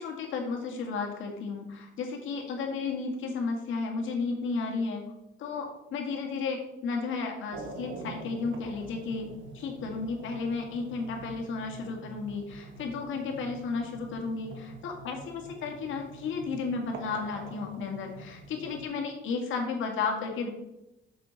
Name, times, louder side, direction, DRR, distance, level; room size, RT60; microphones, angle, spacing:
voice 1, 0.0-5.0 5.4-20.5, left 4 dB, 80° left, 2 dB, 1.8 m, -33 dB
sound 1, 7.5-18.8, right 3 dB, 70° right, 1.2 m, -46 dB
6.9 x 6.2 x 3.9 m, 0.90 s
cardioid pair, 90°, 20 cm